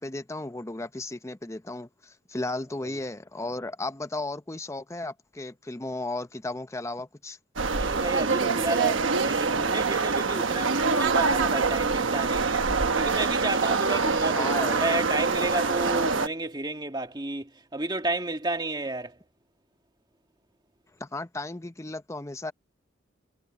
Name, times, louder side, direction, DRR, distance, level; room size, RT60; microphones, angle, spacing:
voice 1, 0.0-7.4 14.4-15.1 21.0-22.5, left 2 dB, 15° left, 0.7 m, -35 dB
sound 1, 7.6-16.3, right 4 dB, 75° right, 1.2 m, -25 dB
voice 2, 7.7-12.6 13.0-19.2, right 2 dB, 20° right, 1.9 m, -31 dB
head